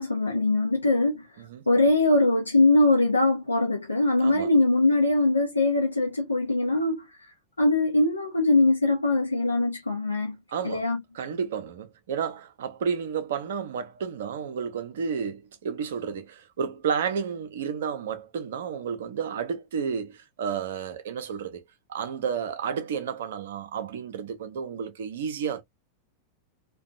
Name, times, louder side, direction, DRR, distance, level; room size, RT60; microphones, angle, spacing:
voice 1, 0.0-1.2 1.7-7.0 7.6-10.4 10.6-11.0, left 2 dB, 80° left, 0.6 m, -22 dB
voice 2, 4.2-4.5 10.5-10.8 11.1-21.6 21.9-25.6, right 7 dB, 60° right, 0.5 m, -31 dB
2.6 x 2.2 x 2.4 m
figure-of-eight pair, 90°, 0 cm